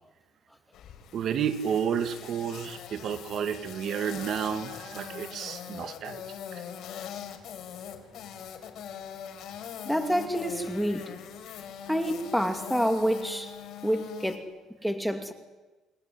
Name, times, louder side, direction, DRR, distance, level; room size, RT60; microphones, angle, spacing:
sound 1, 0.7-14.4, left 8 dB, 60° left, 4.1 m, -42 dB
voice 1, 1.1-6.2 6.5-6.6, right 8 dB, 55° right, 2.0 m, -31 dB
voice 2, 9.8-11.1 11.9-13.5 13.8-14.5 14.8-15.3, equal, ahead, 2.6 m, -28 dB
29.0 x 20.0 x 9.7 m
cardioid pair, 120°, 0 cm